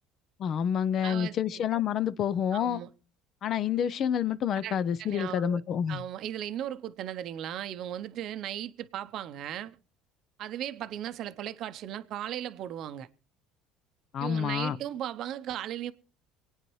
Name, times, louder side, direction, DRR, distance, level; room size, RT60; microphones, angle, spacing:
voice 1, 0.4-2.8 3.4-6.0 14.1-14.8, left 8 dB, 45° left, 0.6 m, -28 dB
voice 2, 1.0-1.4 1.7-1.8 2.5-2.9 4.6-5.6 5.9-9.8 10.4-13.1 14.2-15.9, right 11 dB, 55° right, 0.7 m, -37 dB
25.0 x 9.1 x 3.1 m
cardioid pair, 120°, 0 cm